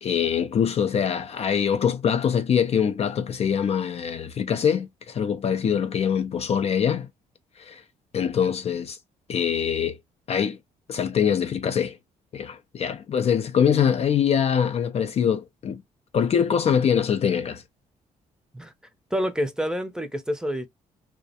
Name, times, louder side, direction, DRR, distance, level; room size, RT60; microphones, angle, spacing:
voice 1, 0.0-7.1 7.6-7.8 8.1-9.0 9.3-10.0 10.3-10.6 10.9-12.0 12.3-15.8 16.1-17.6, left 8 dB, 45° left, 0.4 m, -23 dB
voice 2, 19.1-20.7, equal, 5° right, 0.6 m, -27 dB
2.3 x 2.1 x 2.7 m
supercardioid pair, 70°, 15 cm